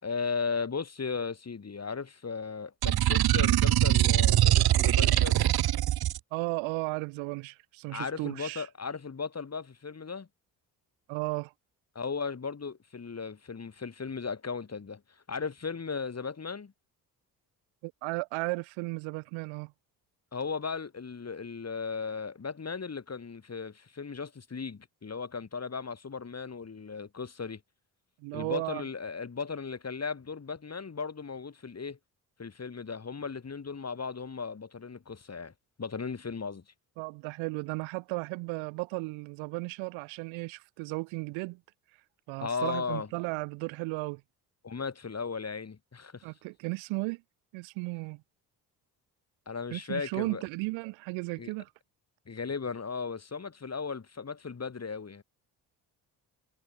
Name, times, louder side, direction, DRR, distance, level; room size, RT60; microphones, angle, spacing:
voice 1, 0.0-5.4 7.9-10.3 11.9-16.7 20.3-27.6 28.3-32.0 32.4-36.6 42.4-43.1 44.6-46.3 49.5-50.4 51.4-51.5 52.3-55.2, left 5 dB, 35° left, 5.0 m, -36 dB
sound 1, 2.8-6.2, right 13 dB, 50° right, 1.1 m, -23 dB
voice 2, 6.3-8.6 11.1-11.5 17.8-19.7 28.2-28.8 37.0-41.6 42.3-44.2 46.2-47.2 47.5-48.2 49.7-51.7, right 26 dB, 75° right, 3.6 m, -35 dB
hypercardioid pair, 50°, 47 cm